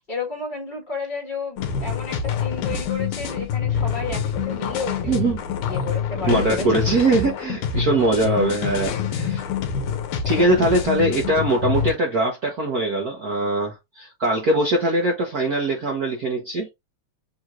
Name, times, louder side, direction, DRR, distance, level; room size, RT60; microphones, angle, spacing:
voice 1, 0.1-6.8, left 4 dB, 25° left, 1.2 m, -32 dB
sound 1, 1.6-11.9, left 7 dB, 90° left, 2.4 m, -26 dB
voice 2, 5.1-5.4 6.3-9.5 10.2-16.7, right 2 dB, 90° right, 0.8 m, -22 dB
7.0 x 3.0 x 2.5 m
omnidirectional pair, 3.3 m